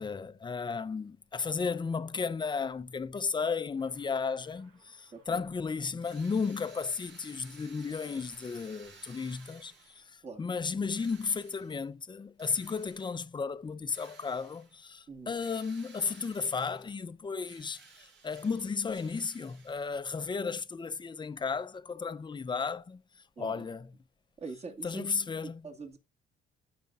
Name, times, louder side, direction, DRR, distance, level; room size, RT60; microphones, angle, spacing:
voice 1, 0.0-23.0 23.4-23.9 24.8-25.6, left 5 dB, 20° left, 0.6 m, -34 dB
sound 1, 3.8-5.6 6.6-10.0, right 4 dB, 85° right, 3.2 m, -65 dB
voice 2, 5.1-5.4 10.2-10.5 15.1-15.4 23.4-23.7 24.4-25.1 25.4-26.0, right 4 dB, 30° right, 2.0 m, -43 dB
Drill, 6.0-10.2 10.9-11.9 12.4-13.2 13.9-14.8 15.4-17.0 17.4-20.0, right 5 dB, 60° right, 5.0 m, -56 dB
15.0 x 5.2 x 2.5 m
cardioid pair, 95°, 21 cm